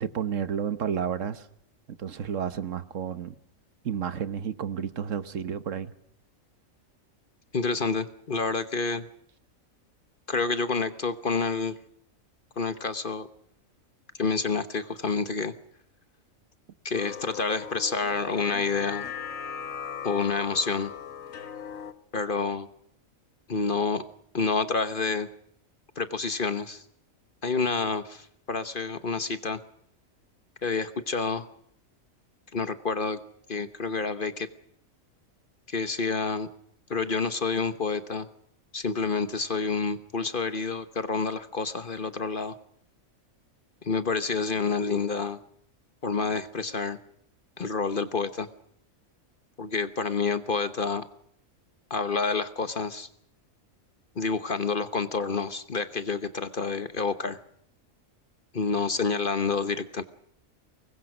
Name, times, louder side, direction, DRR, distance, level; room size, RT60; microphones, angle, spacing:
voice 1, 0.0-1.5 2.0-3.3 3.8-5.9, right 8 dB, 65° right, 13 dB, 1.4 m, -31 dB
voice 2, 7.5-9.1 10.3-11.8 12.6-13.3 14.2-15.5 16.8-19.1 20.0-20.9 22.1-22.7 23.5-24.0 24.3-25.3 26.0-26.8 27.4-29.6 30.6-31.5 32.5-33.2 33.5-34.5 35.7-36.5 36.9-38.3 38.7-42.6 43.8-45.4 46.0-47.0 47.6-48.5 49.6-51.1 51.9-53.1 54.2-57.4 58.5-60.0, left 4 dB, 40° left, 12 dB, 1.2 m, -28 dB
sound 1, 16.9-21.9, left 8 dB, 75° left, 1.6 m, -38 dB
24.0 x 21.0 x 6.2 m, 0.69 s
omnidirectional pair, 1.4 m